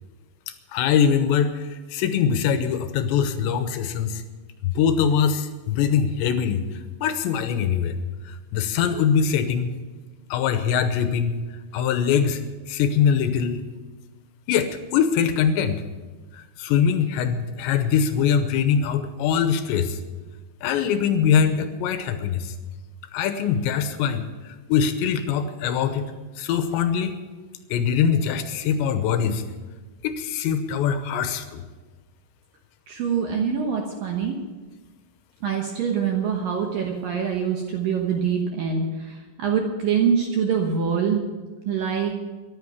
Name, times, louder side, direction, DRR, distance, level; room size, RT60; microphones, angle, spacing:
voice 1, 0.5-4.2 4.6-6.6 7.0-8.0 8.3-9.7 10.3-11.4 11.7-12.4 12.7-13.6 14.5-15.8 16.3-20.0 20.6-22.5 23.1-26.1 26.4-27.2 27.7-29.4 30.0-31.6, left 7 dB, 75° left, 9 dB, 2.8 m, -23 dB
voice 2, 32.9-34.4 35.4-41.2 41.7-42.1, right 7 dB, 70° right, 1 dB, 2.1 m, -24 dB
14.5 x 11.5 x 7.1 m, 1.3 s
omnidirectional pair, 5.7 m